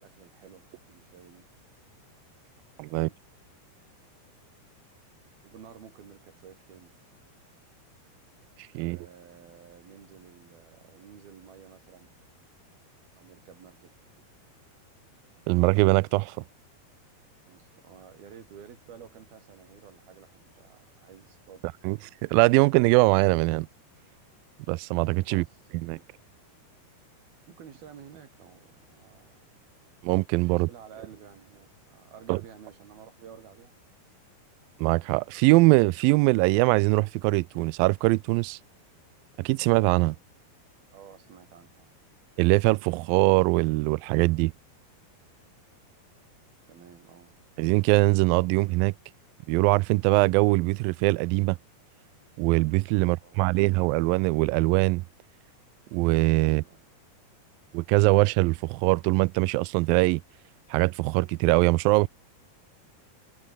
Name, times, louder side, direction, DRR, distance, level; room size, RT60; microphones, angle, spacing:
voice 1, 0.0-1.5 2.9-3.2 5.4-6.9 8.7-12.1 13.2-13.9 17.5-21.6 25.2-25.6 25.9-26.1 27.5-29.5 30.5-33.7 40.9-41.9 46.7-47.3 52.9-53.6 56.4-56.9, right 8 dB, 65° right, 4.9 m, -51 dB
voice 2, 2.8-3.1 8.8-9.0 15.5-16.4 21.8-23.7 24.7-25.4 25.9-26.0 30.0-30.7 32.3-32.4 34.8-38.6 39.4-40.2 42.4-44.5 47.6-48.9 49.5-51.6 52.4-55.0 55.9-56.6 57.7-60.2 60.7-62.1, right 24 dB, 90° right, 2.0 m, -22 dB
omnidirectional pair, 4.6 m